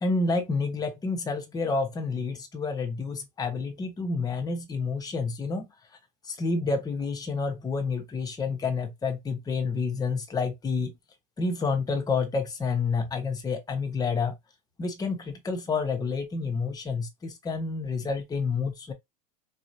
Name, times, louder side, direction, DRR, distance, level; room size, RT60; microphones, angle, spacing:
voice 1, 0.0-5.7 6.2-10.9 11.4-14.4 14.8-18.9, left 4 dB, 20° left, 1.1 m, -29 dB
4.3 x 3.0 x 2.7 m
supercardioid pair, 125°, 21 cm